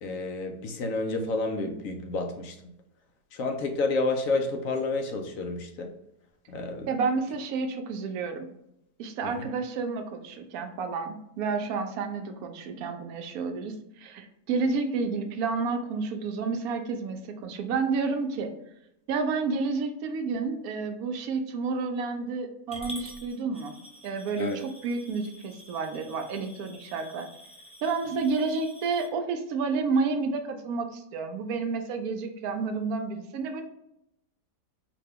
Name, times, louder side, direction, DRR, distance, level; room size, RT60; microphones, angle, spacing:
voice 1, 0.0-2.6 3.3-5.9 6.5-6.9 9.2-9.5 24.4-24.6, left 3 dB, 65° left, 4 dB, 0.9 m, -30 dB
voice 2, 6.9-8.5 9.0-18.5 19.1-23.7 24.0-27.3 27.8-33.6, right 4 dB, 70° right, 6 dB, 1.0 m, -30 dB
Coin (dropping) / Glass, 22.7-29.1, equal, 10° left, 0.4 m, -47 dB
4.9 x 2.2 x 3.4 m, 0.81 s
omnidirectional pair, 1.8 m